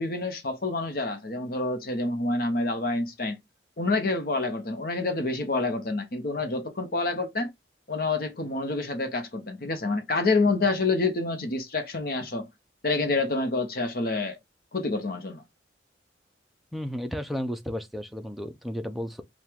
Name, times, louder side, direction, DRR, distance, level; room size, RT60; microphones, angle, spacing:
voice 1, 0.0-3.4 3.8-7.5 7.9-12.5 12.8-14.4 14.7-15.4, left 3 dB, 50° left, 0.9 m, -27 dB
voice 2, 16.7-19.2, equal, ahead, 0.4 m, -33 dB
4.6 x 2.4 x 3.5 m
head